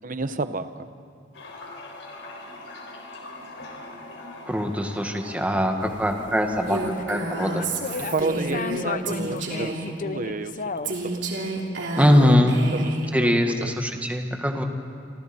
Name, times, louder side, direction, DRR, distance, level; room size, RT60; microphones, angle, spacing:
voice 1, 0.0-0.9 5.5-5.6 8.0-11.3 11.9-12.4 12.7-13.8, right 3 dB, 50° right, 11 dB, 1.0 m, -31 dB
Toilet flush, 1.3-8.3, left 2 dB, 90° left, 4.3 m, -41 dB
voice 2, 4.5-6.8 7.1-7.6 12.0-12.6 13.1-14.6, equal, 10° right, 3 dB, 1.8 m, -22 dB
sound 1, 5.8-7.0 7.4-11.1, left 4 dB, 45° left, 0.7 m, -34 dB
Female speech woman speaking, 6.7-10.0 10.8-13.1, right 2 dB, 70° right, 3.2 m, -30 dB
29.5 x 25.5 x 4.4 m, 2.5 s
head